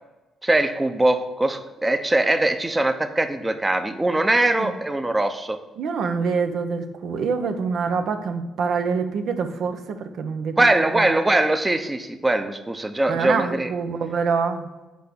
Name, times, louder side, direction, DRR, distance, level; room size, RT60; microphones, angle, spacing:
voice 1, 0.4-5.6 10.6-13.7, right 2 dB, 15° right, 9 dB, 0.7 m, -21 dB
voice 2, 5.8-10.7 10.9-11.1 13.1-14.7, right 5 dB, 70° right, 7 dB, 0.9 m, -25 dB
8.3 x 4.6 x 6.8 m, 1.1 s
cardioid pair, 90°, 0 cm